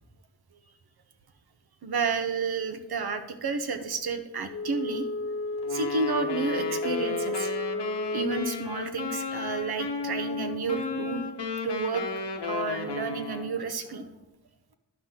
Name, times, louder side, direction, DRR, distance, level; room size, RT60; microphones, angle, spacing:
voice 1, 1.8-5.1 5.7-7.5 8.1-11.3 11.6-12.1 12.4-14.1, right 4 dB, 65° right, 8 dB, 0.8 m, -31 dB
Wind instrument woodwind instrument, 4.5-8.6, left 2 dB, 35° left, 0.6 m, -32 dB
Wind instrument woodwind instrument 2, 5.6-13.6, left 4 dB, 75° left, 0.9 m, -34 dB
10.5 x 5.9 x 3.7 m, 1.0 s
wide cardioid pair, 120°, 41 cm